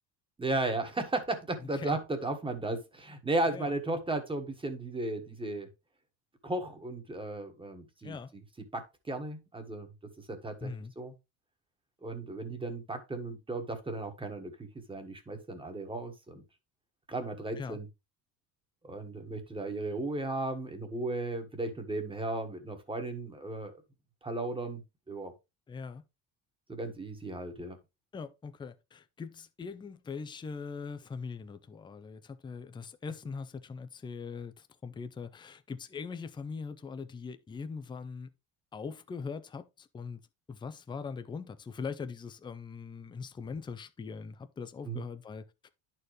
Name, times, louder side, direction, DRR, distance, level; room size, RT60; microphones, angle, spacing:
voice 1, 0.4-5.7 6.4-8.4 8.7-9.9 10.3-10.7 11.0-11.1 12.0-14.5 14.9-16.4 17.1-17.9 18.8-23.7 24.2-24.8 25.1-25.3 26.7-27.8 44.8-45.0, right 2 dB, 10° right, 1.4 m, -35 dB
voice 2, 10.6-10.9 17.6-17.8 25.7-26.0 28.1-38.3 38.7-40.2 40.5-45.7, left 5 dB, 10° left, 0.4 m, -41 dB
11.0 x 4.5 x 3.2 m
cardioid pair, 135°, 42 cm